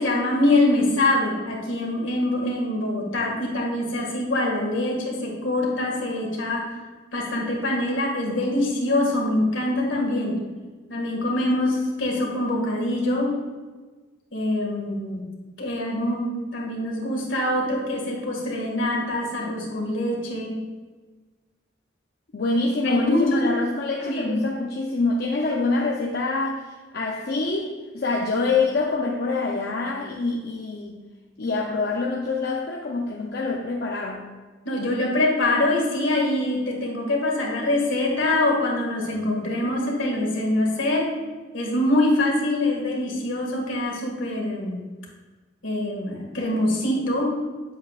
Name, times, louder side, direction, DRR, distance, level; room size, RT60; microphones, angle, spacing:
voice 1, 0.0-6.7 7.1-10.4 10.9-13.3 14.3-15.2 15.6-20.6 22.8-23.4 24.0-24.4 34.7-41.1 41.5-44.8 45.6-47.4, left 1 dB, 75° left, -1 dB, 1.9 m, -24 dB
voice 2, 22.3-31.0 31.4-34.3, left 3 dB, 55° left, -1 dB, 0.6 m, -25 dB
9.0 x 7.3 x 2.4 m, 1.3 s
head